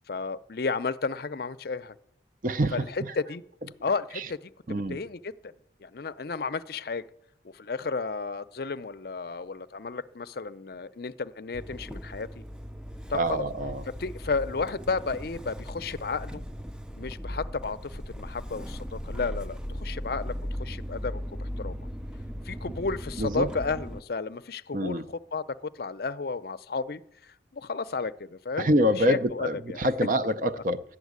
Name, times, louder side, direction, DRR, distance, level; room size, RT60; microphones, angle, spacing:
voice 1, 0.1-2.0 2.7-3.4 3.8-4.5 4.9-5.5 5.8-7.0 7.4-12.4 13.1-13.5 14.0-16.4 17.0-21.9 22.4-28.7 29.0-29.8, left 4 dB, 55° left, 0.5 m, -33 dB
voice 2, 2.4-3.1 4.2-4.3 4.7-5.0 13.1-13.8 23.2-23.5 24.7-25.0 28.6-30.8, equal, 45° right, 0.6 m, -26 dB
Motor vehicle (road) / Engine starting, 11.5-24.0, equal, 5° right, 0.4 m, -38 dB
12.5 x 7.3 x 9.5 m
head